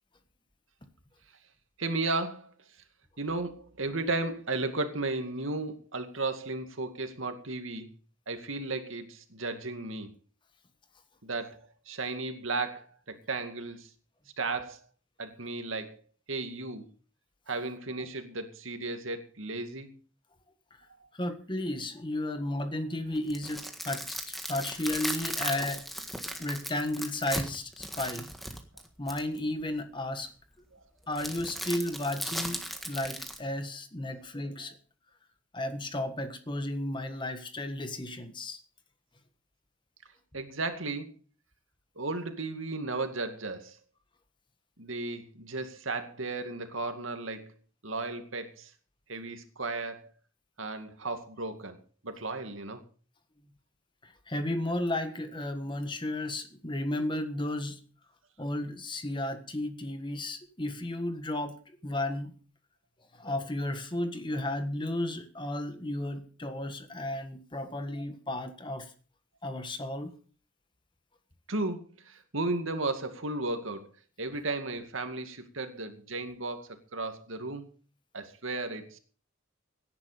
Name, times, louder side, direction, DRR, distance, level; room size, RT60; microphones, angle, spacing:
voice 1, 1.8-2.5 3.2-7.9 8.3-10.1 11.2-13.9 14.4-14.8 15.2-16.0 16.3-16.9 17.5-19.9 26.3-26.4 30.7-30.8 40.3-41.1 42.0-43.8 44.8-47.5 47.8-48.7 49.1-50.1 50.6-51.8 52.0-52.8 67.7-67.8 71.5-73.9 74.2-77.7 78.1-79.0, right 3 dB, 80° right, 7 dB, 2.3 m, -34 dB
voice 2, 21.1-25.8 26.4-28.3 29.0-30.3 31.1-34.8 35.5-38.6 54.0-57.8 58.4-61.6 61.8-62.3 63.2-68.9 69.4-70.1, left 1 dB, 25° left, 8 dB, 1.5 m, -33 dB
sound 1, 23.1-29.4 31.2-33.4, equal, ahead, 1.6 m, -37 dB
17.5 x 10.5 x 5.1 m, 0.40 s
head